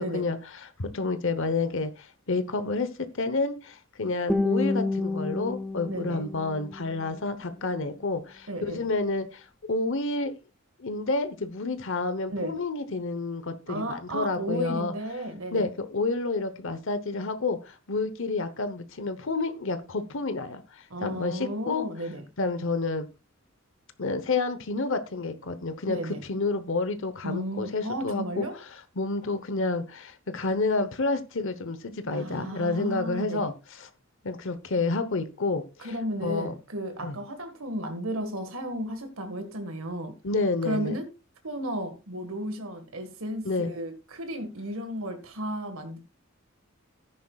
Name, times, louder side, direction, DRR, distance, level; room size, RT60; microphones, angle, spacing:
voice 1, 0.0-10.3 10.8-14.9 15.5-21.9 22.4-23.1 24.0-26.0 26.3-28.5 29.0-33.9 34.2-35.9 36.2-36.5 37.0-37.2 40.2-41.0 43.4-43.7, left 3 dB, 65° left, 1.0 m, -29 dB
Guitar, 4.3-7.3, left 2 dB, ahead, 0.8 m, -29 dB
voice 2, 5.9-6.2 8.5-8.8 12.3-12.5 13.7-15.7 20.9-22.3 25.9-26.2 27.2-28.6 32.1-33.5 35.8-40.2 40.6-41.1 41.4-46.0, right 1 dB, 80° right, 1.7 m, -34 dB
14.0 x 10.0 x 2.4 m
head